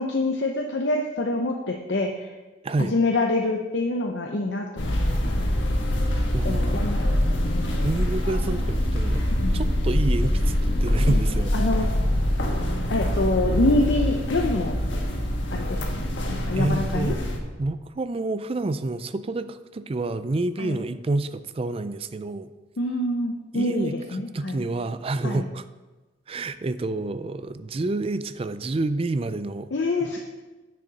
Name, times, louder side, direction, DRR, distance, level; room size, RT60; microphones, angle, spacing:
voice 1, 0.0-2.3 2.8-5.7 6.4-7.8 9.4-9.6 11.0-11.2 11.5-11.9 12.9-14.8 15.5-17.1 20.6-20.8 22.8-24.6 25.2-25.4 29.7-30.2, left 2 dB, 70° left, 2 dB, 0.7 m, -26 dB
sound 1, 4.8-17.4, equal, 85° left, 1.3 m, -24 dB
voice 2, 6.3-6.8 7.8-9.3 9.5-11.5 16.5-17.2 17.6-22.5 23.5-24.0 24.3-25.6 26.3-29.7, right 2 dB, 30° right, 13 dB, 0.4 m, -28 dB
9.9 x 6.7 x 4.0 m, 1.2 s
head